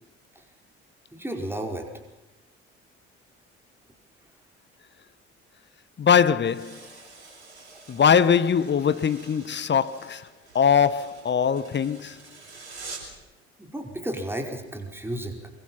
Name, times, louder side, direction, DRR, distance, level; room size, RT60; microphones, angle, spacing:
voice 1, 1.1-1.9 13.6-15.5, right 1 dB, 5° right, 4.9 m, -33 dB
voice 2, 6.0-6.8 7.9-10.3 10.5-12.2, left 7 dB, 35° left, 1.2 m, -21 dB
sound 1, 6.4-13.2, right 3 dB, 85° right, 5.1 m, -46 dB
24.5 x 23.0 x 5.7 m
figure-of-eight pair, 50°, 33 cm